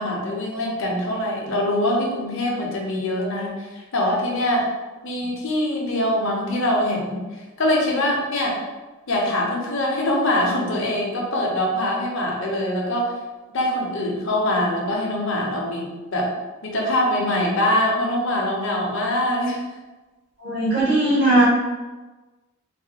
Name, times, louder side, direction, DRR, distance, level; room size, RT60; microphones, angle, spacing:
voice 1, 0.0-4.7 5.0-7.2 7.6-8.5 9.1-13.1 13.5-16.3 16.6-19.6, left 1 dB, 60° left, -1 dB, 0.7 m, -23 dB
voice 2, 20.4-21.4, right 2 dB, 50° right, -13 dB, 1.4 m, -18 dB
3.3 x 2.2 x 2.8 m, 1.2 s
head